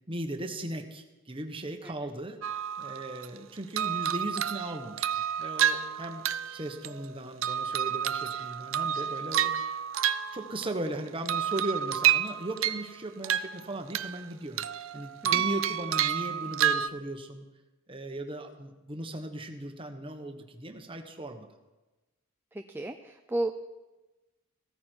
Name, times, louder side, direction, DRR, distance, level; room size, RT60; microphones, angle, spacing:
voice 1, 0.1-2.4 2.8-6.2 6.5-9.5 10.3-14.6 14.9-17.4 17.9-21.5, right 1 dB, 25° right, 5 dB, 1.3 m, -37 dB
sound 1, 2.4-3.4 3.8-7.1 7.4-10.9 11.3-12.9 13.2-14.3 14.6-16.9, right 10 dB, 70° right, 0.5 m, -29 dB
voice 2, 22.5-23.6, right 2 dB, 10° right, 5 dB, 0.5 m, -34 dB
16.0 x 14.0 x 4.6 m, 1.1 s
head